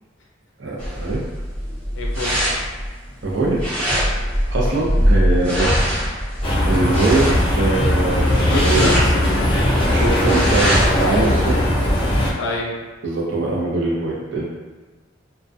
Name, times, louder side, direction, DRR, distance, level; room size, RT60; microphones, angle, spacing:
voice 1, 0.6-1.2 3.2-3.6 4.5-6.3 6.6-9.0 9.9-11.7 13.0-14.4, right 2 dB, 65° right, -3 dB, 0.6 m, -22 dB
sound 1, 0.8-11.0, equal, 15° right, 1.0 m, -22 dB
voice 2, 1.9-2.5 8.3-9.5 12.3-12.7, left 2 dB, 80° left, -1 dB, 0.4 m, -26 dB
sound 2, 6.4-12.3, left 1 dB, 25° left, 0.5 m, -19 dB
2.3 x 2.2 x 2.5 m, 1.4 s
head